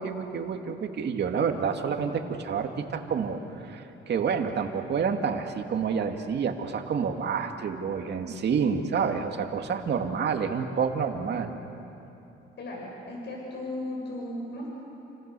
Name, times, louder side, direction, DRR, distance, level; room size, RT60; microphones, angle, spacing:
voice 1, 0.0-11.5, right 6 dB, 60° right, 4 dB, 2.3 m, -28 dB
voice 2, 12.6-14.7, left 1 dB, 60° left, -2 dB, 7.4 m, -36 dB
29.5 x 27.0 x 7.0 m, 2.9 s
cardioid pair, 90°, 20 cm